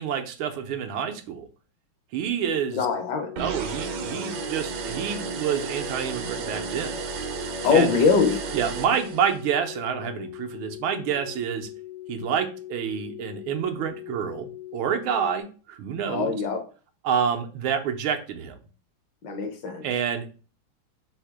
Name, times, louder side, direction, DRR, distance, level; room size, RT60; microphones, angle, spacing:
voice 1, 0.0-1.5 2.1-2.9 3.4-7.0 7.7-7.9 8.5-11.7 12.1-16.3 17.0-18.6 19.8-20.3, right 8 dB, 85° right, 5 dB, 1.6 m, -28 dB
sound 1, 2.5-15.4, left 15 dB, 85° left, 1.5 m, -41 dB
voice 2, 2.7-3.3 7.6-8.4 16.1-16.6 19.2-19.8, left 5 dB, 65° left, 5 dB, 1.4 m, -22 dB
sound 2, 3.4-9.5, right 6 dB, 70° right, 1.2 m, -33 dB
4.0 x 2.8 x 4.6 m, 0.37 s
omnidirectional pair, 2.3 m